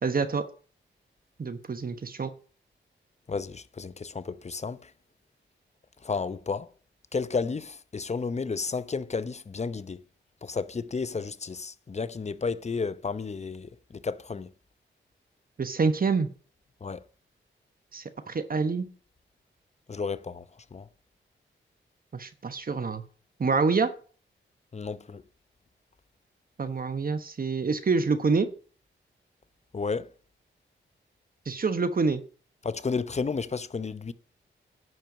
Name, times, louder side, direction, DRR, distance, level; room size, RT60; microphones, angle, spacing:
voice 1, 0.0-0.4 1.4-2.3 15.6-16.3 17.9-18.9 22.1-23.0 23.4-23.9 26.6-28.5 31.5-32.2, right 4 dB, 45° right, 1.2 m, -26 dB
voice 2, 3.3-4.9 6.0-6.7 7.1-10.0 10.4-14.5 16.8-17.0 19.9-20.4 20.7-20.9 24.7-25.2 29.7-30.1 32.6-34.1, left 4 dB, 35° left, 0.8 m, -32 dB
11.0 x 4.5 x 8.0 m
cardioid pair, 60°, 20 cm